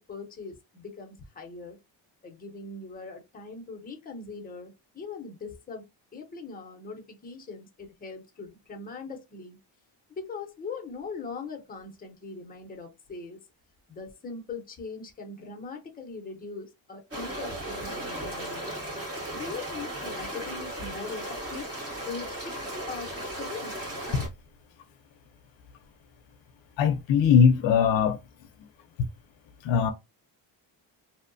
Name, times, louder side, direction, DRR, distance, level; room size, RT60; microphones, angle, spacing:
voice 1, 0.1-1.8 2.2-9.6 10.1-13.4 13.9-18.7 19.3-21.7 22.0-22.5 22.9-23.8, left 4 dB, 20° left, 0.6 m, -41 dB
sound 1, 17.1-24.3, right 1 dB, 30° right, 1.4 m, -36 dB
voice 2, 26.8-28.2 29.0-29.1 29.6-29.9, left 7 dB, 75° left, 0.5 m, -21 dB
2.7 x 2.1 x 2.5 m
cardioid pair, 125°, 45 cm